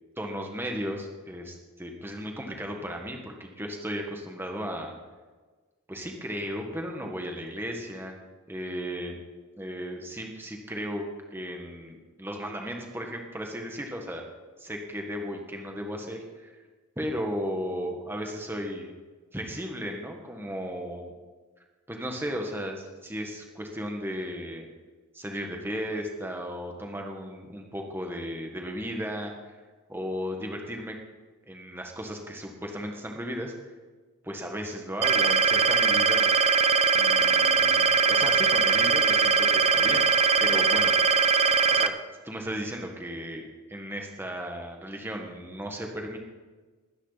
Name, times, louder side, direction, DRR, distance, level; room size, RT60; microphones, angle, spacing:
voice 1, 0.2-4.9 5.9-8.2 8.5-9.2 9.6-14.2 14.6-16.5 16.9-18.9 19.3-21.1 21.9-24.7 25.1-29.6 29.9-30.9 31.4-33.5 34.2-36.3 36.9-40.9 41.7-42.0 42.2-43.4 43.7-46.2, equal, 10° right, 2 dB, 1.6 m, -35 dB
sound 1, 35.0-41.9, right 5 dB, 30° right, 0.5 m, -21 dB
20.5 x 10.0 x 4.2 m, 1.3 s
head